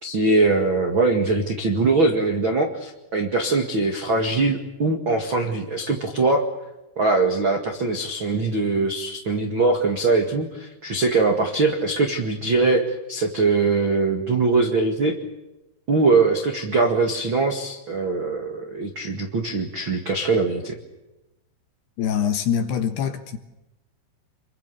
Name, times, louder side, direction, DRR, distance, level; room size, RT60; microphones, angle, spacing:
voice 1, 0.0-6.4 6.9-15.1 15.9-20.8, right 3 dB, 60° right, 1.2 m, -22 dB
voice 2, 22.0-23.4, left 8 dB, 65° left, 3.0 m, -24 dB
27.5 x 23.5 x 6.9 m
omnidirectional pair, 5.9 m